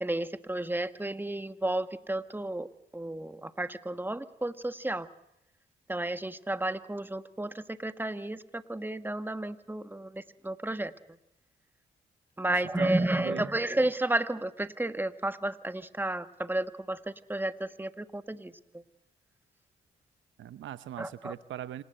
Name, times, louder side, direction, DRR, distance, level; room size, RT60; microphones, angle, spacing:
voice 1, 0.0-2.7 2.9-5.1 5.9-10.9 12.4-17.0 17.3-18.5 21.0-21.3, right 1 dB, 10° right, 10 dB, 1.5 m, -32 dB
voice 2, 12.5-13.5 20.4-21.8, right 11 dB, 75° right, 14 dB, 0.8 m, -41 dB
26.5 x 19.0 x 7.9 m, 0.83 s
supercardioid pair, 55°, 20 cm